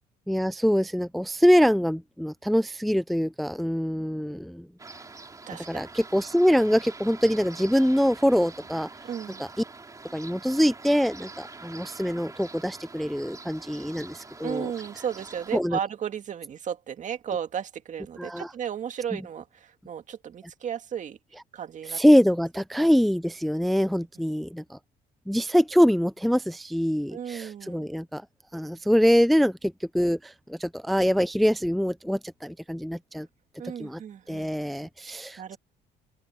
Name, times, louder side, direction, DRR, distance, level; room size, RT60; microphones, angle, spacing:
voice 1, 0.3-4.7 5.7-8.9 9.4-9.5 10.1-14.7 15.5-15.8 18.2-18.5 21.9-24.8 25.3-28.2 28.5-33.3 33.8-34.0 34.3-35.4, equal, ahead, 0.5 m, -24 dB
sound 1, 4.8-15.6, right 3 dB, 20° right, 3.4 m, -45 dB
voice 2, 5.5-5.8 9.0-9.4 14.4-21.2 21.5-22.0 22.8-22.9 24.2-24.3 27.1-27.9 33.6-35.6, right 8 dB, 45° right, 1.9 m, -35 dB
open air
cardioid pair, 110°, 17 cm